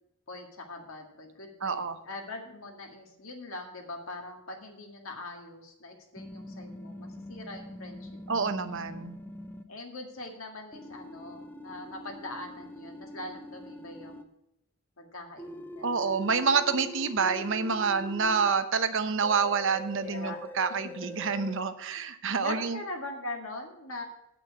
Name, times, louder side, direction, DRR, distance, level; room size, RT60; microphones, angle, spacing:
voice 1, 0.3-8.6 9.7-14.3 15.0-16.1 20.0-20.6 22.4-24.0, left 2 dB, 65° left, 2 dB, 2.0 m, -42 dB
voice 2, 1.6-2.0 8.3-9.1 15.8-22.8, right 5 dB, 55° right, 10 dB, 0.8 m, -28 dB
sound 1, 6.2-9.6 10.7-14.2 15.4-18.5 19.2-21.6, left 1 dB, 10° left, 0.6 m, -44 dB
8.6 x 6.1 x 8.3 m, 0.79 s
head